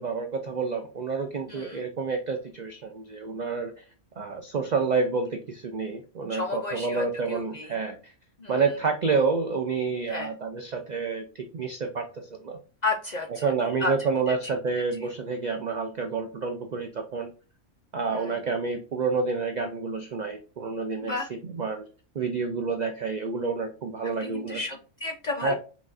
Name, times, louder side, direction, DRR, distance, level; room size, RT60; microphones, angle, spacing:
voice 1, 0.0-3.8 4.2-8.1 8.5-12.6 13.4-17.3 17.9-21.8 22.1-24.6 25.4-25.5, right 4 dB, 60° right, 5 dB, 0.4 m, -29 dB
voice 2, 1.5-1.8 6.3-7.7 8.4-8.6 10.1-10.3 12.8-13.9 14.3-14.4 18.1-18.4 21.0-21.3 24.2-25.5, left 3 dB, 50° left, 2 dB, 0.5 m, -32 dB
5.7 x 2.4 x 2.5 m, 0.37 s
omnidirectional pair, 1.3 m